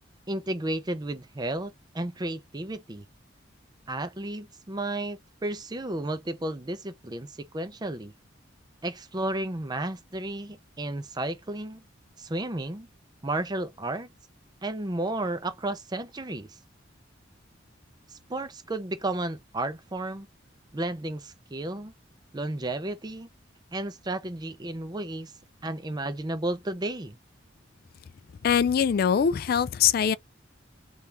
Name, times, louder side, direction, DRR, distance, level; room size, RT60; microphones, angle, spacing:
voice 1, 0.3-3.1 3.9-8.1 8.8-11.8 12.2-12.9 13.2-14.1 14.6-16.5 18.1-20.3 20.7-21.9 22.3-23.3 23.7-25.3 25.6-27.2, right 2 dB, 20° right, 0.5 m, -33 dB
voice 2, 28.4-30.2, left 8 dB, 50° left, 0.3 m, -22 dB
3.3 x 2.8 x 3.3 m
head